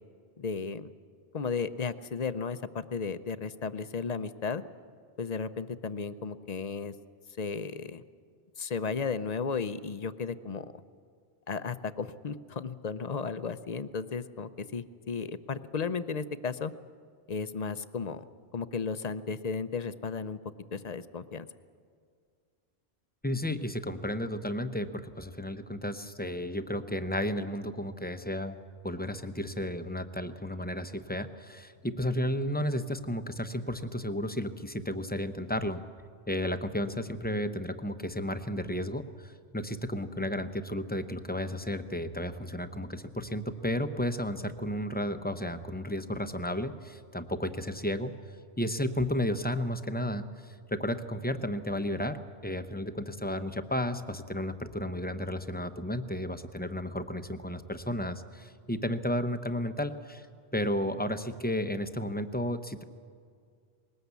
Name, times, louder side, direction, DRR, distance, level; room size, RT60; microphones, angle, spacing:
voice 1, 0.4-0.9 1.3-4.6 5.2-6.9 7.4-8.0 8.6-10.7 11.5-16.7 17.3-18.2 18.5-20.4 20.7-21.5, left 5 dB, 45° left, 13 dB, 0.7 m, -34 dB
voice 2, 23.2-28.6 28.8-35.8 36.3-48.1 48.6-60.3 60.5-62.8, left 1 dB, 10° left, 9 dB, 0.7 m, -33 dB
21.0 x 19.0 x 8.2 m, 2.1 s
omnidirectional pair, 1.1 m